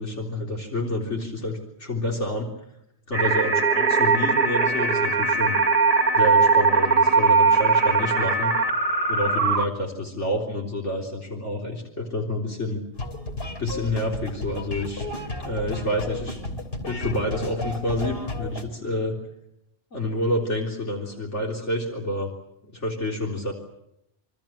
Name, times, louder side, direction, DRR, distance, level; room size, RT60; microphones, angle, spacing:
voice 1, 0.0-2.5 3.1-5.6 6.1-8.5 9.1-12.8 13.6-15.1 15.4-19.1 19.9-22.3 22.7-23.5, left 1 dB, 80° left, 0 dB, 4.1 m, -28 dB
sound 1, 3.1-9.7, right 4 dB, 35° right, 1.1 m, -20 dB
sound 2, 13.0-18.6, left 2 dB, 55° left, 3.4 m, -33 dB
27.5 x 24.5 x 7.5 m, 0.80 s
omnidirectional pair, 1.2 m